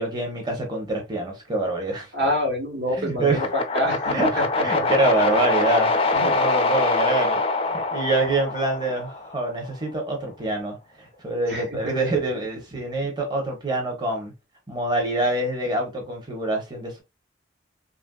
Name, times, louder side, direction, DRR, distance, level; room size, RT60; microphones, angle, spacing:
voice 1, 0.0-2.1 3.0-3.4 4.1-7.4 7.7-14.3 14.7-17.0, right 2 dB, 25° right, 0.7 m, -26 dB
voice 2, 2.1-4.4 4.7-4.9 6.1-6.4 11.5-12.1, left 1 dB, 70° right, 1.2 m, -27 dB
sound 1, 3.3-9.4, left 3 dB, 30° left, 0.3 m, -24 dB
3.0 x 2.5 x 2.2 m
head